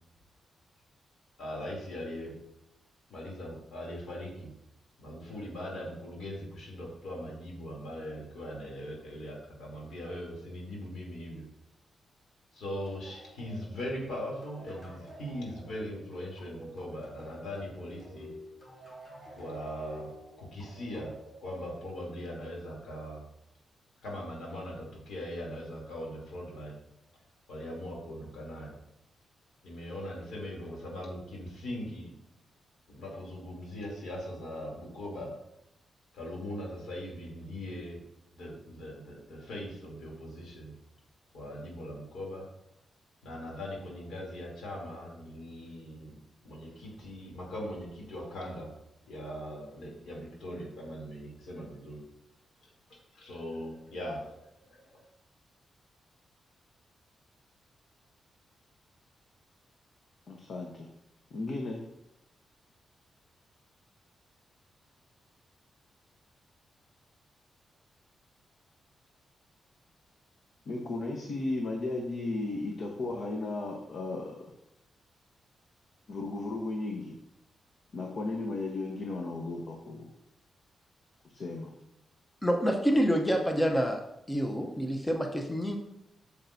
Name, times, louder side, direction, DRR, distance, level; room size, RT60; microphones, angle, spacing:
voice 1, 1.4-2.4 3.1-4.5 5.0-11.5 12.5-18.3 19.3-23.3 24.0-26.8 27.5-28.8 29.6-32.2 32.9-35.4 36.1-38.0 38.3-40.7 41.3-42.5 43.2-48.7 49.1-52.0 52.9-55.1, equal, 80° left, -2 dB, 2.9 m, -40 dB
sound 1, 12.9-22.1, equal, 35° left, 3.1 m, -50 dB
voice 2, 60.3-60.9 61.3-61.8 70.7-74.4 76.1-77.2 77.9-80.1 81.3-81.7, left 2 dB, 60° left, 1 dB, 1.0 m, -35 dB
voice 3, 82.4-84.0 84.3-85.8, equal, 10° left, 3 dB, 0.7 m, -27 dB
8.7 x 7.0 x 2.7 m, 0.84 s
cardioid pair, 115°, 0 cm